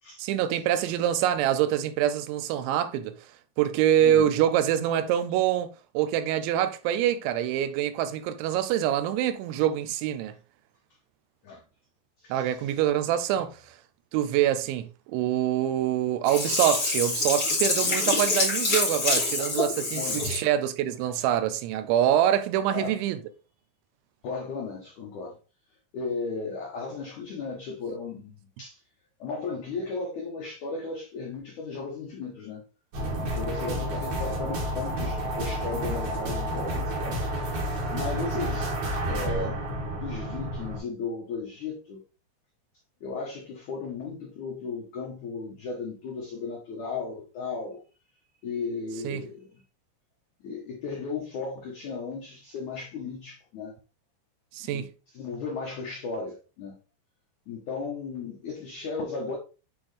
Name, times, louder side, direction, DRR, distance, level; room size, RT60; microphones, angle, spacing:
voice 1, 0.2-3.2 3.6-5.7 5.9-10.3 12.3-13.8 14.1-23.2 49.0-49.2 54.5-54.9, right 11 dB, 90° right, 3.0 m, -25 dB
voice 2, 4.0-4.3 11.4-11.6 12.2-12.5 19.9-20.4 22.7-23.0 24.2-25.4 25.9-28.3 28.6-28.8 29.2-32.6 33.2-37.5 37.9-38.7 39.0-39.6 40.0-42.0 43.0-47.8 48.4-49.5 50.4-53.8 54.6-56.7 57.5-59.4, left 4 dB, 85° left, 1.7 m, -35 dB
Sink (filling or washing), 16.3-20.5 20.9-21.0, left 2 dB, 30° left, 2.0 m, -26 dB
sound 1, 32.9-40.8, right 1 dB, 50° right, 2.7 m, -30 dB
8.7 x 3.8 x 3.3 m
omnidirectional pair, 5.3 m